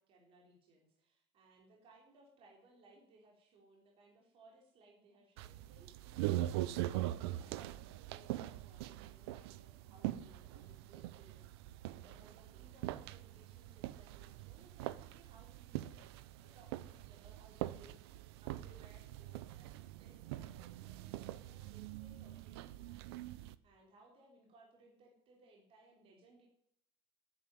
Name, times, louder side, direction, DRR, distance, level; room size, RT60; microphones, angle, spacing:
voice 1, 0.0-23.2 23.6-26.5, right 2 dB, 45° right, 0 dB, 4.7 m, -65 dB
sound 1, 5.4-23.5, right 15 dB, 80° right, 0.9 m, -43 dB
13.5 x 10.5 x 9.6 m, 0.73 s
supercardioid pair, 110°, 13 cm